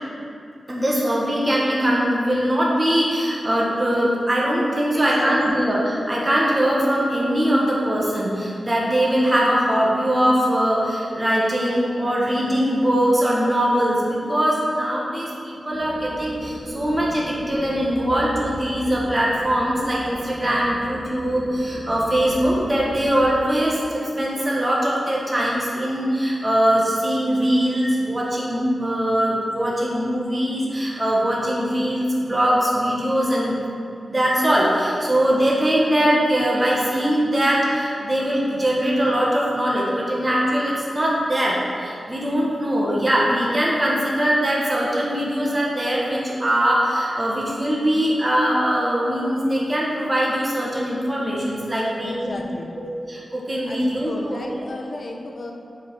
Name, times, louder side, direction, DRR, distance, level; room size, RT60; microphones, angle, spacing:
voice 1, 0.7-33.6 34.1-52.4 53.1-54.4, equal, 20° right, -5 dB, 1.3 m, -21 dB
voice 2, 4.9-5.7 52.0-52.7 53.7-55.5, left 2 dB, 45° left, 1 dB, 0.9 m, -34 dB
sound 1, 15.7-23.3, equal, 5° left, 1.8 m, -36 dB
7.1 x 5.4 x 6.1 m, 2.4 s
wide cardioid pair, 135°, 0 cm